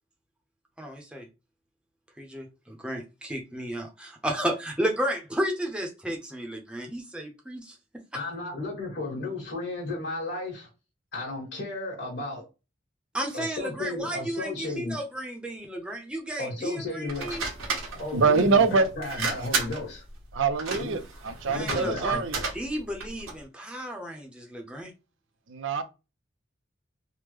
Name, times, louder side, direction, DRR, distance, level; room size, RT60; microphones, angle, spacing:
voice 1, 0.8-1.3 2.2-8.2 13.1-17.4 21.4-22.2 22.5-24.9, right 1 dB, 5° right, 0.6 m, -33 dB
voice 2, 8.1-10.7 11.1-12.4 13.3-15.0 16.4-17.4 18.0-20.1 20.8-21.0 21.5-22.2, left 2 dB, 50° left, 1.4 m, -34 dB
sound 1, 17.1-23.4, right 4 dB, 85° right, 1.1 m, -34 dB
voice 3, 18.1-18.9 20.3-22.4 25.5-25.8, right 4 dB, 65° right, 0.5 m, -24 dB
3.5 x 2.1 x 3.0 m
head